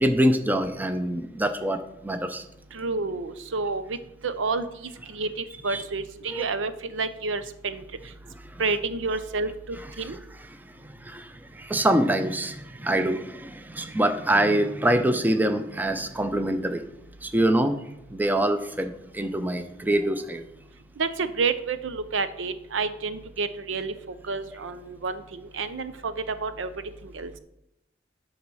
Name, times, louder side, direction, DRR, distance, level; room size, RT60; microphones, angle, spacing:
voice 1, 0.0-1.8 2.0-2.4 5.7-5.8 6.3-6.4 9.8-10.2 11.1-11.2 11.6-16.8 17.2-17.8 18.1-20.4, right 1 dB, 10° right, 8 dB, 0.6 m, -25 dB
voice 2, 2.7-4.0 4.2-7.8 8.6-10.2 21.0-26.7 27.0-27.3, right 4 dB, 85° right, 12 dB, 0.6 m, -30 dB
10.5 x 4.1 x 6.2 m, 0.85 s
head